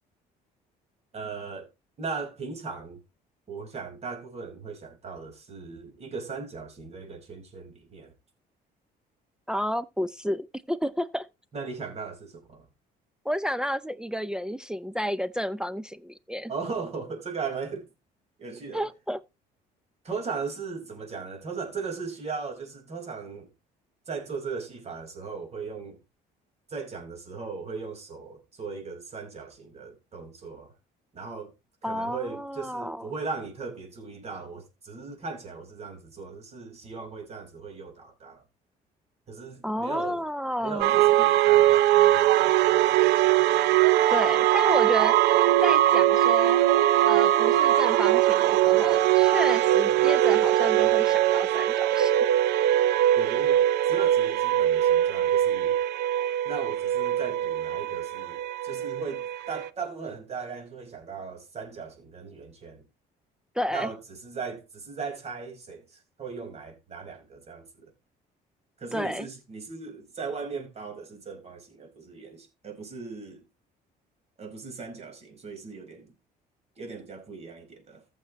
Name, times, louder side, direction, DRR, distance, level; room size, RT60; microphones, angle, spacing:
voice 1, 1.1-1.7 2.0-3.0 3.5-8.1 11.5-12.7 16.5-17.9 18.4-18.8 20.0-23.5 24.1-26.0 26.7-30.7 31.1-31.5 31.8-38.4 39.3-40.2 40.6-43.2 53.1-55.8 56.4-62.8 63.7-67.8 68.8-73.4 74.4-76.1 76.8-78.0, right 5 dB, 40° right, 4.7 m, -38 dB
voice 2, 9.5-11.3 13.2-16.5 18.7-19.2 31.8-33.1 39.6-41.3 44.1-45.2 45.6-46.6 47.1-52.1 63.6-63.9 68.9-69.3, equal, 5° right, 0.5 m, -31 dB
sound 1, 40.8-59.7, right 13 dB, 85° right, 0.6 m, -21 dB
14.5 x 6.9 x 3.1 m
cardioid pair, 110°, 17 cm